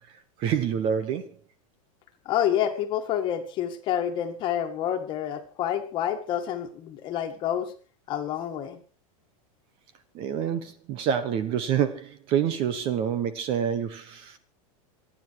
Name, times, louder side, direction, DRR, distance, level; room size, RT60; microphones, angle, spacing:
voice 1, 0.4-1.3 10.1-14.4, right 8 dB, 30° right, 1.2 m, -27 dB
voice 2, 2.3-7.7 8.1-8.8, left 10 dB, 25° left, 2.0 m, -28 dB
26.0 x 10.0 x 4.7 m
supercardioid pair, 175°, 19 cm